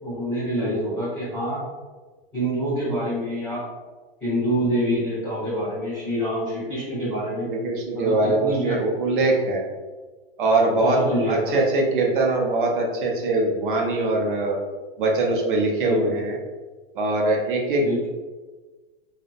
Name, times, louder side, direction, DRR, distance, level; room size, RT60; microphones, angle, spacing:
voice 1, 0.0-1.6 2.3-3.7 4.2-7.5 7.9-8.8 10.8-11.6 15.8-16.1 17.8-18.1, equal, 5° left, -19 dB, 0.3 m, -26 dB
voice 2, 7.4-9.6 10.4-11.0 11.3-14.6 15.0-16.4 16.9-17.8, right 2 dB, 60° right, 0 dB, 0.6 m, -22 dB
2.5 x 2.1 x 2.3 m, 1.3 s
supercardioid pair, 175°, 30 cm